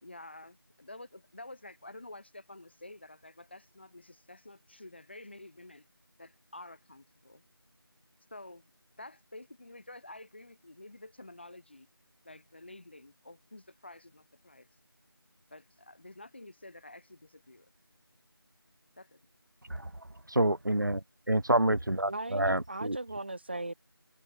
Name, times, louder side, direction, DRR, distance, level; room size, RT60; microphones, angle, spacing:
voice 1, 0.0-5.8 6.2-7.4 8.3-8.6 9.0-11.9 12.2-14.7 15.5-17.7 19.0-19.2, left 2 dB, 25° left, 3.2 m, -50 dB
voice 2, 20.4-23.0, right 1 dB, 55° right, 2.2 m, -28 dB
voice 3, 22.1-23.7, right 2 dB, 25° right, 3.7 m, -37 dB
figure-of-eight pair, 175°, 13 cm